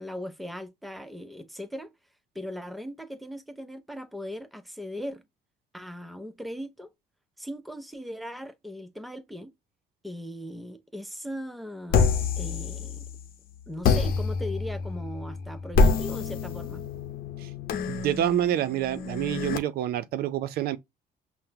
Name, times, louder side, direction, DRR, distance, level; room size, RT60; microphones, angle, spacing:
voice 1, 0.0-1.9 2.3-5.2 5.7-6.9 7.4-9.5 10.0-13.1 13.7-16.8, equal, ahead, 0.6 m, -39 dB
sound 1, 11.9-13.3 13.8-19.6, left 4 dB, 60° left, 0.8 m, -27 dB
voice 2, 17.9-20.8, right 11 dB, 65° right, 0.5 m, -27 dB
5.7 x 2.0 x 2.8 m
cardioid pair, 110°, 17 cm